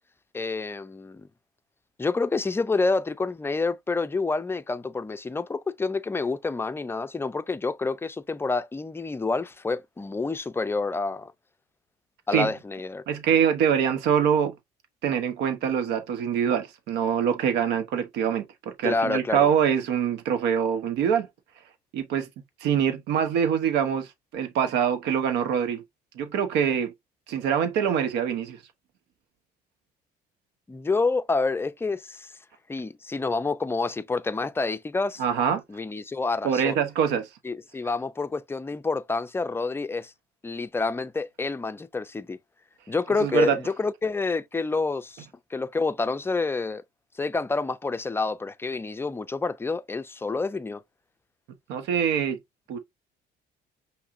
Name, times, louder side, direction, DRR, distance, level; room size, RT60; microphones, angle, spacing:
voice 1, 0.3-1.3 2.0-11.3 12.3-13.0 18.8-19.5 30.7-32.3 32.7-35.2 35.7-36.8 37.4-40.1 40.4-42.4 42.9-46.8 47.2-50.8, left 3 dB, 15° left, 0.4 m, -28 dB
voice 2, 13.1-14.5 15.0-21.3 21.9-22.3 22.6-25.8 26.2-26.9 27.3-28.6 35.2-35.6 36.4-37.3 43.2-43.6 51.7-52.4 52.7-52.8, right 8 dB, 85° right, 1.0 m, -24 dB
5.7 x 3.2 x 2.6 m
cardioid pair, 110°, 17 cm